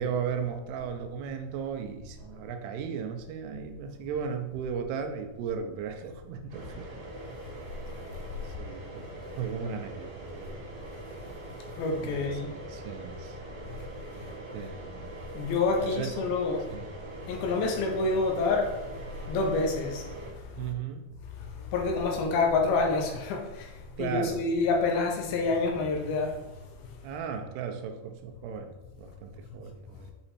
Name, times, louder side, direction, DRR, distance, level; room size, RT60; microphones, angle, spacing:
voice 1, 0.0-6.9 8.4-10.6 12.0-13.4 14.2-15.1 15.8-16.1 16.7-17.0 20.6-21.2 24.0-24.4 27.0-30.1, right 7 dB, 90° right, 5 dB, 2.8 m, -36 dB
sound 1, 6.5-20.3, right 2 dB, 60° right, 1.5 m, -43 dB
voice 2, 11.8-12.5 15.3-16.6 17.3-18.8 19.3-20.0 21.7-23.7 24.0-26.4, left 3 dB, 80° left, 1 dB, 2.5 m, -27 dB
7.7 x 3.0 x 4.2 m, 1.1 s
omnidirectional pair, 4.6 m